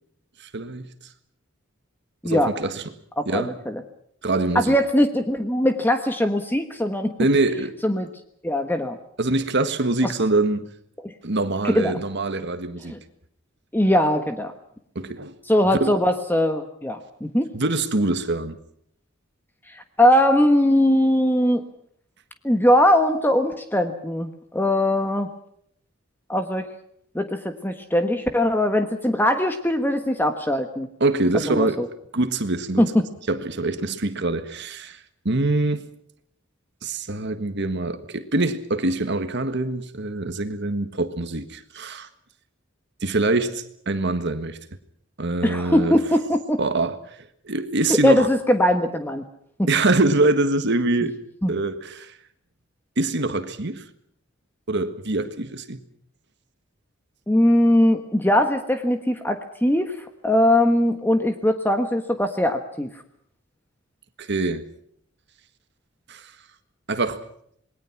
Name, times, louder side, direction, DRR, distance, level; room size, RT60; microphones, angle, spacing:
voice 1, 0.5-0.9 2.2-2.8 3.3-3.5 4.2-4.7 7.2-7.8 9.2-10.7 11.2-12.9 14.9-15.3 15.8-16.0 17.5-18.6 31.0-31.8 32.1-32.9 33.3-35.0 35.2-35.8 36.8-42.1 43.0-44.6 45.2-45.9 46.6-47.2 47.4-48.3 49.7-51.1 51.5-52.1 53.0-53.8 54.7-55.8 64.2-64.6 66.1-66.3 66.9-67.2, right 2 dB, 60° right, 1.6 m, -24 dB
voice 2, 3.2-3.8 4.5-7.1 7.8-8.1 8.4-9.0 11.0-11.1 11.6-12.0 12.9-13.0 13.7-14.5 15.5-17.5 19.7-21.6 22.4-25.3 26.3-26.7 27.1-30.9 31.4-31.9 32.8-32.9 45.4-46.6 47.9-49.2 49.6-49.7 51.4-51.5 57.3-60.0 60.2-62.9, left 1 dB, 10° left, 1.4 m, -20 dB
27.5 x 20.5 x 6.0 m
head